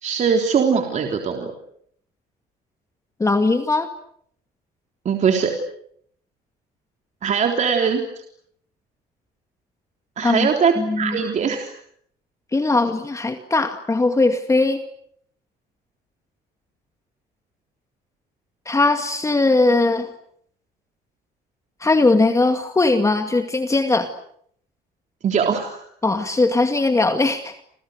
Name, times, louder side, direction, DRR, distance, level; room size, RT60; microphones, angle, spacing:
voice 1, 0.0-1.5 5.1-5.5 7.2-8.2 10.2-11.7 25.2-25.8, right 6 dB, 45° right, 3 dB, 3.6 m, -21 dB
voice 2, 3.2-3.9 10.2-10.5 10.8-11.2 12.5-14.8 18.7-20.1 21.8-24.1 26.0-27.6, left 3 dB, 20° left, 7 dB, 2.1 m, -19 dB
29.5 x 27.5 x 6.6 m, 0.66 s
cardioid pair, 110°, 17 cm